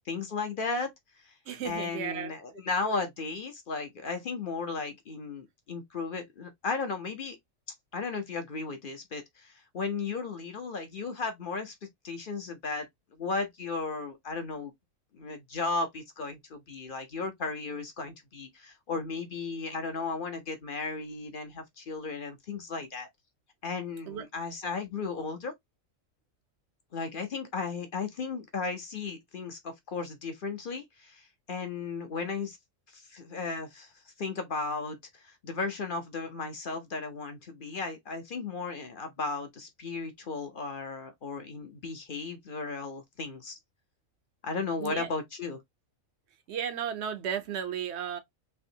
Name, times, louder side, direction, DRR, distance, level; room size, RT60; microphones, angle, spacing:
voice 1, 0.1-0.9 1.2-1.3 1.6-7.4 7.9-11.7 12.0-14.7 15.1-23.1 23.6-25.5 26.9-32.6 32.9-43.6 44.4-45.6, left 4 dB, 45° left, 0.8 m, -35 dB
voice 2, 1.5-2.3 24.1-24.2 44.8-45.1 46.5-48.2, right 8 dB, 60° right, 0.9 m, -34 dB
3.4 x 3.0 x 2.7 m
omnidirectional pair, 1.4 m